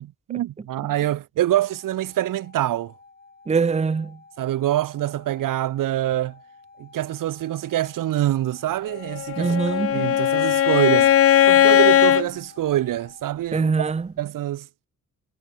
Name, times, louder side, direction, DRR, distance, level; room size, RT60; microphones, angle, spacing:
voice 1, 0.3-2.9 4.4-6.4 6.8-9.5 9.9-13.7 14.2-14.7, right 13 dB, 85° right, 0.9 m, -25 dB
sound 1, 1.6-13.3, left 4 dB, 30° left, 6.5 m, -51 dB
voice 2, 3.5-4.2 9.4-10.2 13.5-14.1, right 5 dB, 20° right, 0.7 m, -23 dB
Bowed string instrument, 9.1-12.3, left 10 dB, 45° left, 0.5 m, -18 dB
cardioid pair, 100°, 32 cm